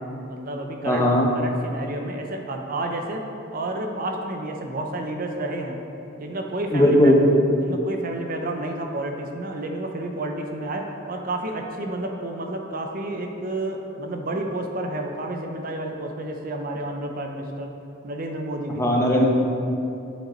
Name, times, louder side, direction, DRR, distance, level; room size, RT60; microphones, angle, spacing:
voice 1, 0.3-1.1 1.3-3.2 3.5-5.8 6.2-7.1 7.6-17.7 18.0-18.8, right 1 dB, 45° right, 3 dB, 0.6 m, -30 dB
voice 2, 0.8-1.3 6.7-7.2 18.8-19.3, left 1 dB, 15° left, -1 dB, 0.8 m, -17 dB
7.8 x 5.2 x 4.3 m, 2.8 s
head